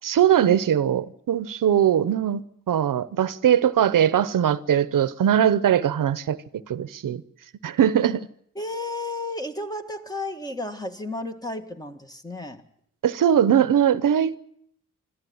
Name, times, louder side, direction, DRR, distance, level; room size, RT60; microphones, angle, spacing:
voice 1, 0.0-6.4 6.7-7.2 7.6-8.2 13.0-14.4, right 9 dB, 75° right, 0.9 m, -21 dB
voice 2, 8.5-12.6, left 2 dB, 10° left, 1.6 m, -33 dB
25.5 x 13.5 x 9.5 m
wide cardioid pair, 150°, 33 cm